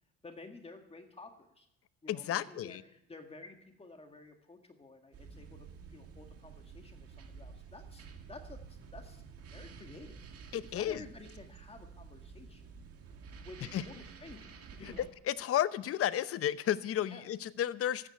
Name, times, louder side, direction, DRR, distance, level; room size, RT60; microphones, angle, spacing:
voice 1, 0.2-1.7 2.0-9.2 9.5-10.2 10.6-12.8 13.4-13.9 14.2-15.1 17.1-17.2, left 3 dB, 20° left, 5 dB, 1.8 m, -52 dB
voice 2, 2.1-2.8 10.5-11.0 13.7-13.8 14.8-14.9 15.3-18.1, left 11 dB, 50° left, 15 dB, 0.8 m, -32 dB
sound 1, 5.1-15.1, right 5 dB, 50° right, 2.1 m, -51 dB
13.5 x 9.6 x 9.0 m, 0.80 s
cardioid pair, 100°, 30 cm